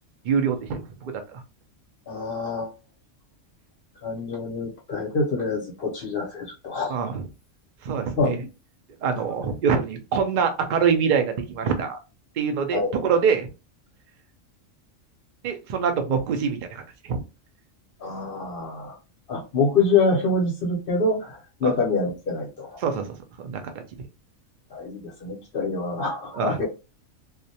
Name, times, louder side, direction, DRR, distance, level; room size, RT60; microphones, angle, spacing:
voice 1, 0.2-1.4 6.9-7.3 7.8-8.4 9.0-12.0 12.4-13.5 15.4-17.2 21.6-21.7 22.8-23.7 26.3-26.6, right 6 dB, 75° right, 0.4 m, -25 dB
voice 2, 2.1-2.7 4.0-7.0 8.2-8.4 9.1-9.2 12.7-13.0 18.0-18.9 19.3-22.8 24.7-26.7, left 3 dB, 55° left, 0.7 m, -26 dB
2.4 x 2.1 x 2.7 m
omnidirectional pair, 1.4 m